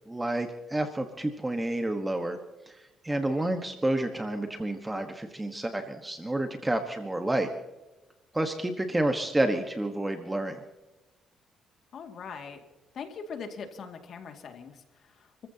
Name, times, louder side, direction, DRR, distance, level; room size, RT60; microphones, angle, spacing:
voice 1, 0.1-2.4 2.7-2.8 3.0-7.5 8.3-10.6, right 1 dB, 15° right, 6 dB, 1.4 m, -29 dB
voice 2, 3.1-3.4 11.9-12.6 12.9-15.5, left 5 dB, 60° left, 4 dB, 2.3 m, -42 dB
29.0 x 15.0 x 2.9 m, 1.1 s
cardioid pair, 90°, 0 cm